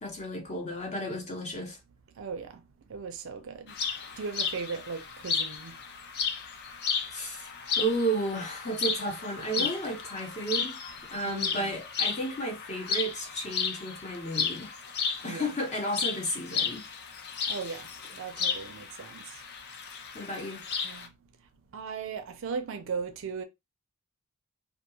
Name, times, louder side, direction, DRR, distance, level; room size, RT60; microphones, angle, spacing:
voice 1, 0.0-1.8 7.1-7.5 7.8-10.8 11.1-14.7 15.2-16.8 20.1-20.6, right 1 dB, 30° left, 0.8 m, -33 dB
voice 2, 2.2-2.6 2.9-3.7 4.2-5.8 9.6-9.7 11.2-11.8 15.2-15.5 17.5-17.9 18.1-19.2 20.8-21.1 21.7-23.4, right 5 dB, 60° right, 0.4 m, -37 dB
sound 1, 3.7-21.1, left 6 dB, 45° left, 0.4 m, -34 dB
2.3 x 2.3 x 2.9 m
head